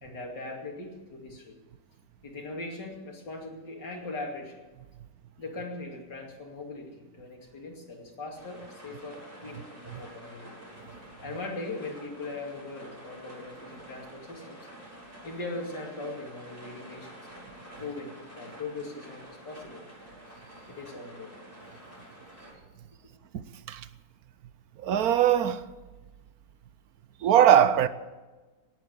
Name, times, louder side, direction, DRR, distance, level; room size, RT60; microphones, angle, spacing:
voice 1, 0.0-1.6 2.2-4.6 5.4-10.5 11.2-14.6 15.2-17.2 17.8-19.8 20.7-21.4, left 2 dB, 85° left, 3.2 m, -40 dB
sound 1, 8.3-22.5, right 1 dB, 20° right, 6.7 m, -48 dB
voice 2, 23.3-23.9 24.8-25.7 27.2-27.9, right 10 dB, 65° right, 1.1 m, -21 dB
18.0 x 9.0 x 8.0 m
omnidirectional pair, 1.8 m